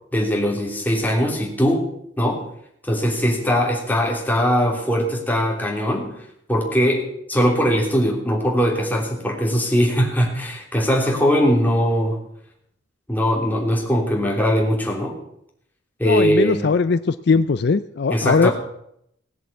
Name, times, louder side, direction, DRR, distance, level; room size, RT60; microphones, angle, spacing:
voice 1, 0.1-1.8 2.2-2.4 2.9-6.1 6.5-12.2 13.1-15.2 16.0-16.7 18.1-18.5, equal, 10° left, 0 dB, 3.1 m, -20 dB
voice 2, 16.0-18.5, left 4 dB, 60° left, 13 dB, 0.5 m, -19 dB
17.5 x 7.7 x 8.4 m, 0.74 s
head